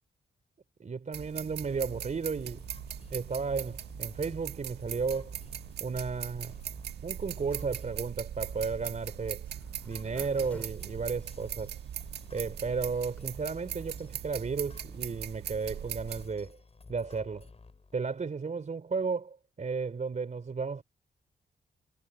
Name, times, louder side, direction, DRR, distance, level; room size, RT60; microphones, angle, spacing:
voice 1, 0.8-2.6 3.1-5.4 5.8-6.5 7.0-9.5 9.9-11.7 12.3-16.6 16.9-17.5 17.9-20.8, right 5 dB, 45° right, 3.5 m, -34 dB
sound 1, 1.1-16.3, right 10 dB, 85° right, 1.5 m, -40 dB
sound 2, 1.6-18.0, left 4 dB, 40° left, 7.7 m, -53 dB
Zipper (clothing), 7.6-11.9 12.4-12.5 12.6-12.7 13.0-13.3, left 1 dB, 10° left, 6.4 m, -52 dB
cardioid pair, 60°, 17 cm